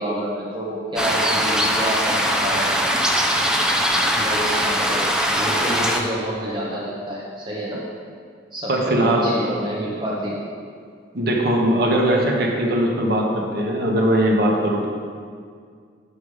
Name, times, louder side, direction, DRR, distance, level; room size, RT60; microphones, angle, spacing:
voice 1, 0.0-2.9 4.1-5.1 5.4-7.8 8.5-10.4, equal, 25° right, -6 dB, 1.0 m, -28 dB
sound 1, 1.0-6.0, equal, 5° right, 0.5 m, -21 dB
voice 2, 8.7-9.4 11.1-14.9, right 1 dB, 55° right, -1 dB, 1.2 m, -20 dB
7.0 x 6.7 x 4.9 m, 2.1 s
head